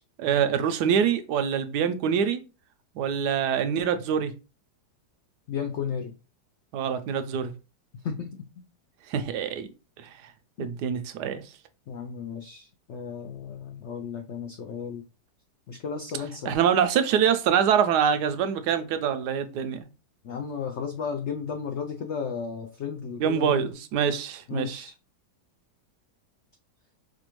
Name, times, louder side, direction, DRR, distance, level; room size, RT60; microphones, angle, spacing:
voice 1, 0.2-2.4 3.0-4.3 6.7-7.5 9.1-9.7 10.0-10.1 10.6-11.4 16.5-19.9 23.2-24.9, right 8 dB, 80° right, 1.1 m, -25 dB
voice 2, 5.5-6.1 8.0-8.4 10.6-10.7 11.9-15.0 15.7-16.5 20.2-23.6 24.5-24.9, left 6 dB, 85° left, 0.6 m, -34 dB
4.9 x 2.2 x 3.0 m
omnidirectional pair, 1.8 m